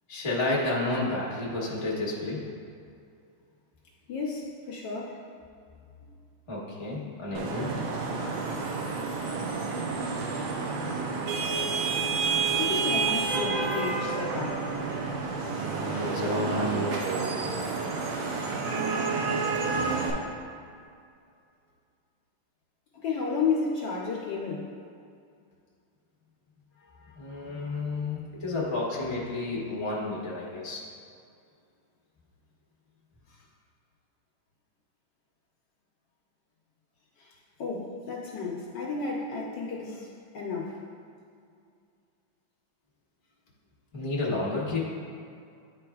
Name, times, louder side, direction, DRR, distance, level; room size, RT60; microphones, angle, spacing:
voice 1, 0.1-2.5 6.5-7.8 15.9-16.8 27.1-30.8 43.9-44.8, left 2 dB, 25° left, -6 dB, 0.7 m, -31 dB
voice 2, 4.1-5.2 6.1-6.2 12.6-14.7 22.9-24.7 26.8-27.7 33.3-33.4 37.2-37.3 37.6-40.8, left 4 dB, 65° left, -3 dB, 1.2 m, -33 dB
Vehicle horn car horn honking / Traffic noise roadway noise, 7.3-20.1, right 4 dB, 75° right, 1.5 m, -29 dB
10.5 x 4.2 x 2.3 m, 2.3 s
omnidirectional pair, 2.3 m